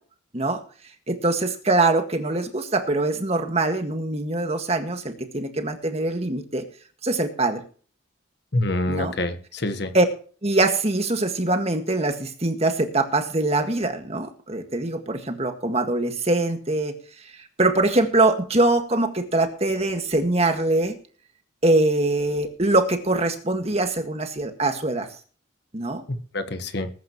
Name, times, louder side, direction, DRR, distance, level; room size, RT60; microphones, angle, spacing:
voice 1, 1.1-6.6 7.0-7.6 8.9-9.1 9.9-10.1 10.4-21.0 21.6-25.1 25.7-26.0, right 2 dB, 30° right, 6 dB, 1.8 m, -23 dB
voice 2, 8.5-9.9 26.1-26.9, left 1 dB, 55° left, 9 dB, 1.3 m, -26 dB
20.5 x 10.5 x 3.1 m, 0.40 s
head